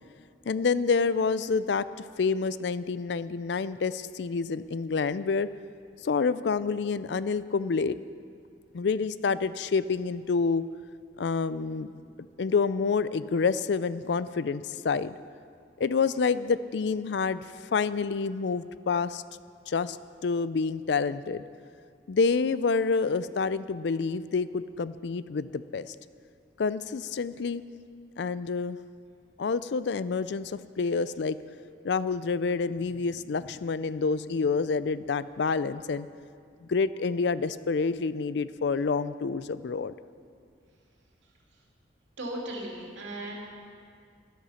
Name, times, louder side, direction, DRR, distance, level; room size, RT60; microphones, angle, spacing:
voice 1, 0.5-5.5 6.0-8.0 8.7-10.6 11.2-11.9 12.4-15.2 15.8-17.4 17.7-19.2 19.7-20.0 20.2-21.4 22.1-25.9 26.6-27.6 28.2-28.8 29.4-31.4 31.8-36.1 36.7-40.0, left 4 dB, 70° left, 15 dB, 0.4 m, -28 dB
voice 2, 42.2-43.3, right 1 dB, 85° right, -1 dB, 2.6 m, -36 dB
12.5 x 12.5 x 5.7 m, 2.2 s
head